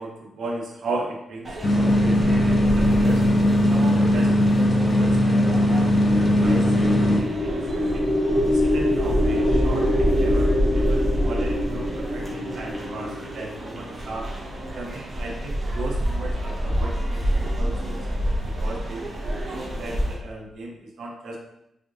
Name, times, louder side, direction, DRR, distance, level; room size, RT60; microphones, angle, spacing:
voice 1, 0.0-3.2 3.7-6.7 7.0-8.1 8.5-14.3 14.7-19.0 19.5-21.4, right 2 dB, 70° right, 0 dB, 0.8 m, -36 dB
sound 1, 1.4-20.1, equal, 30° right, 1.0 m, -28 dB
sound 2, 1.6-7.2, left 1 dB, 35° left, 0.4 m, -19 dB
sound 3, 6.0-14.2, left 1 dB, 10° right, 1.4 m, -25 dB
3.7 x 3.4 x 2.5 m, 0.82 s
cardioid pair, 105°, 0 cm